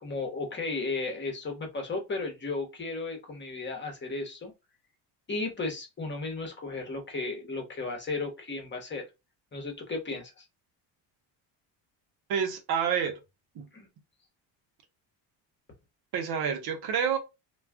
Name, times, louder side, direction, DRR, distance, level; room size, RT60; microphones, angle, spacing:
voice 1, 0.0-4.5 5.3-9.1 9.5-10.4 13.7-13.9, left 3 dB, 25° left, 1.0 m, -34 dB
voice 2, 12.3-13.2 13.6-13.7 16.1-17.2, right 7 dB, 55° right, 0.8 m, -28 dB
2.3 x 2.3 x 3.4 m
cardioid pair, 105°, 44 cm